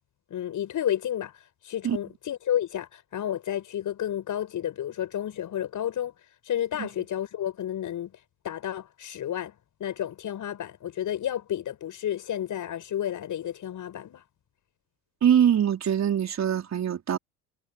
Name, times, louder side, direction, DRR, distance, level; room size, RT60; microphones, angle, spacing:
voice 1, 0.3-1.3 1.6-6.1 6.5-8.2 8.4-14.2, left 10 dB, 50° left, 7.8 m, -31 dB
voice 2, 15.2-17.2, right 9 dB, 45° right, 4.9 m, -23 dB
supercardioid pair, 80°, 39 cm